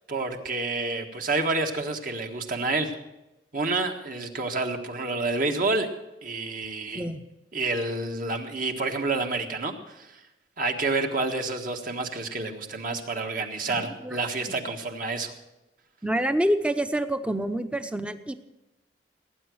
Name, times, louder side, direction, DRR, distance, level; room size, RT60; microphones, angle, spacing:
voice 1, 0.1-2.9 3.5-5.9 6.2-7.0 7.5-10.2 10.6-15.3, right 3 dB, 50° right, 4 dB, 1.6 m, -29 dB
voice 2, 13.7-14.2 16.0-18.3, right 1 dB, 5° right, 10 dB, 0.7 m, -27 dB
18.0 x 9.5 x 6.3 m, 0.97 s
head